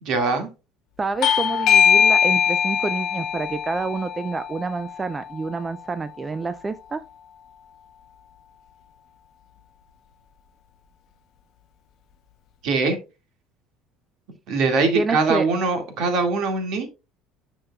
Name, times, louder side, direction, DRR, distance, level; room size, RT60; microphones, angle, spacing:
voice 1, 0.0-0.5 12.6-13.0 14.5-16.9, right 4 dB, 55° right, 2.0 m, -22 dB
voice 2, 1.0-7.0 14.9-15.5, right 4 dB, 20° right, 0.3 m, -28 dB
Bell / Doorbell, 1.2-6.4, left 7 dB, 55° left, 0.8 m, -22 dB
9.6 x 6.1 x 2.3 m
cardioid pair, 140°, 0 cm